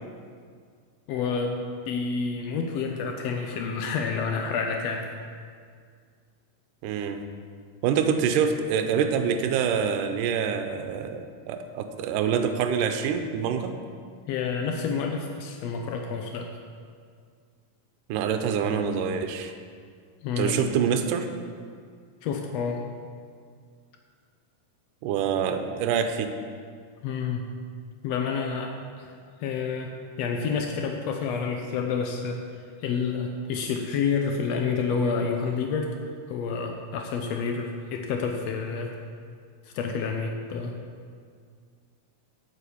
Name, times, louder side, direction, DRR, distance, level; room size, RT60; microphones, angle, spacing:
voice 1, 1.1-5.0 14.3-16.5 20.2-20.6 22.2-22.8 27.0-27.5 28.0-29.9 30.2-32.4 32.8-36.0 36.3-38.9 39.7-40.7, left 5 dB, 90° left, 3 dB, 1.4 m, -29 dB
voice 2, 6.8-7.3 7.8-13.8 18.1-19.5 20.4-21.3 25.0-26.3, right 7 dB, 85° right, 7 dB, 2.2 m, -26 dB
9.1 x 6.6 x 7.0 m, 2.1 s
omnidirectional pair, 3.9 m